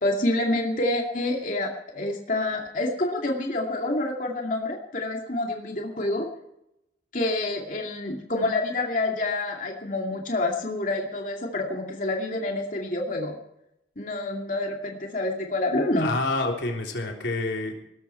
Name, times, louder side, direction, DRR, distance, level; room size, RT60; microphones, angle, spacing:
voice 1, 0.0-6.3 7.1-13.4 14.0-16.1, left 2 dB, 45° left, 0 dB, 2.5 m, -27 dB
voice 2, 16.0-17.7, left 2 dB, 90° left, 1 dB, 3.6 m, -28 dB
18.0 x 13.5 x 4.5 m, 0.82 s
head